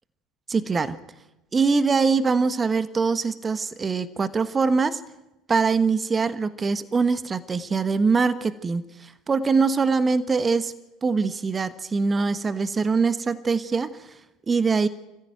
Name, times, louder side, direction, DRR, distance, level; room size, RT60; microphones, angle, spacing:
voice 1, 0.5-1.0 1.5-5.0 5.5-10.7 11.0-14.1 14.5-14.9, right 4 dB, 25° right, 13 dB, 1.3 m, -23 dB
26.5 x 15.0 x 9.3 m, 0.96 s
hypercardioid pair, 70°, 0 cm